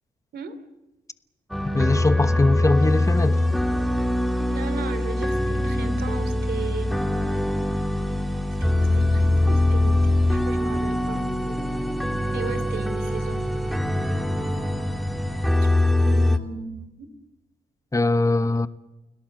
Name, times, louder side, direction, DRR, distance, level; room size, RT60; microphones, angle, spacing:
sound 1, 1.5-16.4, left 1 dB, ahead, 3.2 m, -23 dB
voice 1, 1.7-3.5 17.9-18.7, left 2 dB, 20° left, 1.1 m, -21 dB
voice 2, 4.5-6.9 8.6-11.2 12.3-13.4 15.6-15.7 16.0-17.1, right 5 dB, 70° right, 3.0 m, -36 dB
sound 2, 11.4-14.9, right 2 dB, 45° right, 3.7 m, -42 dB
30.0 x 17.5 x 7.7 m
supercardioid pair, 50°, 17 cm